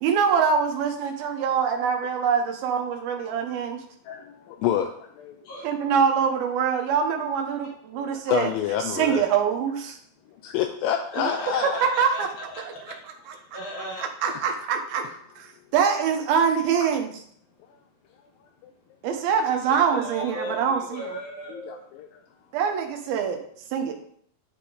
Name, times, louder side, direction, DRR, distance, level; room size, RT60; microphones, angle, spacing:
voice 1, 0.0-3.8 5.6-8.5 8.9-10.0 11.2-11.3 11.6-12.3 13.3-13.6 14.0-15.0 15.4-17.1 19.0-21.2 22.5-23.4 23.7-23.9, right 7 dB, 90° right, 4 dB, 2.7 m, -24 dB
voice 2, 4.1-5.4 7.9-9.2 10.4-11.8 14.3-14.6 18.6-18.7 21.5-22.2, left 9 dB, 80° left, 5 dB, 2.2 m, -28 dB
voice 3, 11.1-12.6 13.5-14.0 19.3-21.8, equal, 60° left, -3 dB, 1.3 m, -37 dB
11.5 x 3.9 x 3.8 m, 0.64 s
omnidirectional pair, 4.3 m